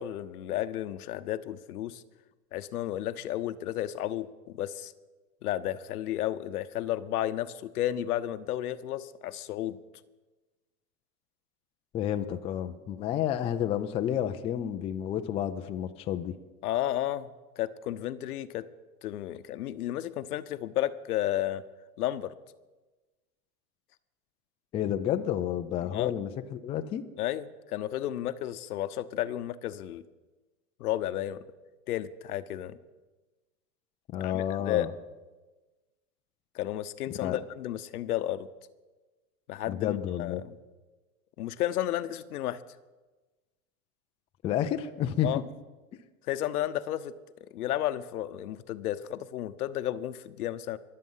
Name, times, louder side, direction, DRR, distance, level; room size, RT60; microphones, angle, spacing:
voice 1, 0.0-2.0 2.5-4.9 5.4-9.8 16.6-17.3 17.6-18.7 19.0-21.6 22.0-22.3 25.9-26.1 27.2-30.0 30.8-31.4 31.9-32.8 34.2-34.9 36.5-38.5 39.5-40.5 41.4-42.6 45.2-45.4 46.3-47.1 47.5-50.8, left 12 dB, 80° left, 13 dB, 0.9 m, -32 dB
voice 2, 11.9-16.3 24.7-27.0 34.1-34.9 37.2-37.4 39.7-40.4 44.4-45.4, left 10 dB, 15° left, 7 dB, 0.3 m, -30 dB
23.0 x 7.7 x 5.5 m, 1.2 s
hypercardioid pair, 125°, 44 cm